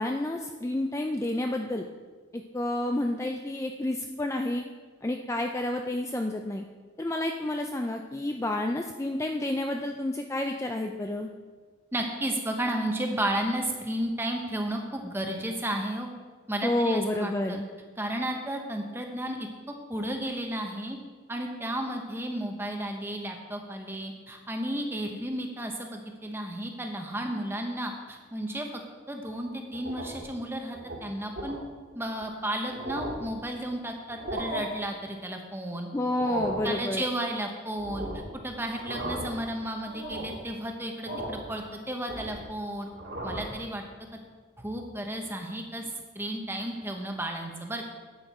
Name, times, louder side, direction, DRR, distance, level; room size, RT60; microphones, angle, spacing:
voice 1, 0.0-1.9 2.3-4.6 5.0-6.6 7.0-11.3 16.6-17.7 35.9-37.0, left 1 dB, 15° left, 4 dB, 0.4 m, -30 dB
voice 2, 11.9-16.1 16.5-17.6 18.0-21.0 21.3-28.7 29.1-31.6 31.9-35.9 36.6-42.9 43.2-43.8 44.6-45.9 46.1-47.8, right 1 dB, 10° right, 3 dB, 1.0 m, -33 dB
sound 1, 29.7-30.3 30.7-31.0 31.4-31.6 32.2-32.3 32.6-33.3 34.1-34.6 36.0-36.7 37.8-38.3 38.7-39.4 39.8-40.4 41.0-41.5 41.8-42.5 42.9-43.6, right 1 dB, 60° right, 2.2 m, -36 dB
10.5 x 8.8 x 4.3 m, 1.5 s
head